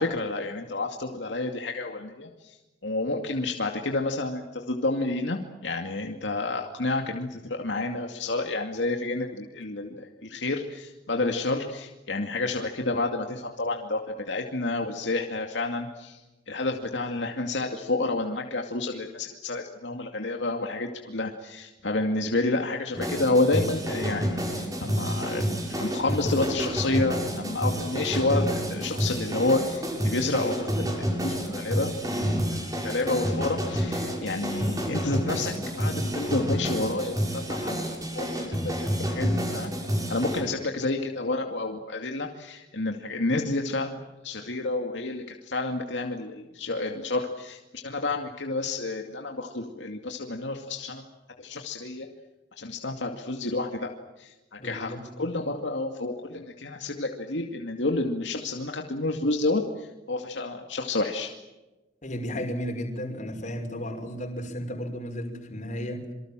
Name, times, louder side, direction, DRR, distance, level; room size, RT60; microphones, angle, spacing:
voice 1, 0.0-2.6 2.8-16.2 16.5-39.7 40.1-44.0 44.2-51.0 51.4-52.1 52.6-53.9 54.2-61.3, left 2 dB, 85° left, 3 dB, 2.4 m, -30 dB
sound 1, 22.9-40.4, equal, 20° right, 7.1 m, -29 dB
voice 2, 54.6-55.0 62.0-66.0, equal, 45° left, 4 dB, 5.7 m, -33 dB
27.0 x 24.5 x 7.6 m, 1.1 s
head